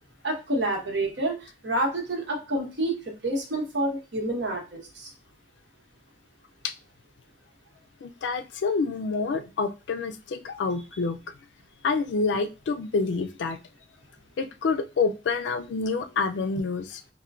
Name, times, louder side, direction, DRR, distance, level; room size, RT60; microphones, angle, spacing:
voice 1, 0.2-1.3 1.6-2.9 3.2-5.1, right 1 dB, 75° right, 0 dB, 1.0 m, -28 dB
voice 2, 8.0-11.2 11.8-13.6 14.4-17.0, left 4 dB, 75° left, 9 dB, 0.3 m, -27 dB
4.2 x 2.1 x 2.4 m, 0.30 s
head